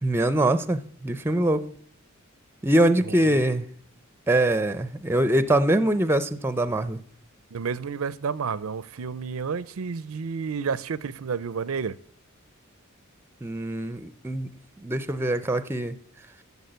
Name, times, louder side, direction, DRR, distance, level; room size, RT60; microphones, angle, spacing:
voice 1, 0.0-1.7 2.6-3.7 4.3-7.0 13.4-14.5 14.8-16.0, right 1 dB, 10° right, 0.6 m, -23 dB
voice 2, 3.0-3.4 7.5-12.0, right 6 dB, 80° right, 0.5 m, -31 dB
13.0 x 7.1 x 8.0 m
head